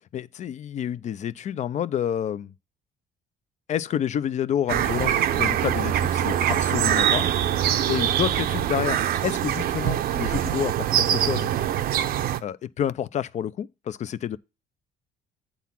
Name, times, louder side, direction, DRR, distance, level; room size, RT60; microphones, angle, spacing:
voice 1, 0.1-2.5 3.7-7.3 7.9-11.5 12.4-14.4, left 9 dB, 45° left, 0.5 m, -29 dB
sound 1, 4.7-12.4, right 10 dB, 65° right, 0.7 m, -23 dB
8.3 x 3.9 x 5.8 m
cardioid pair, 110°, 17 cm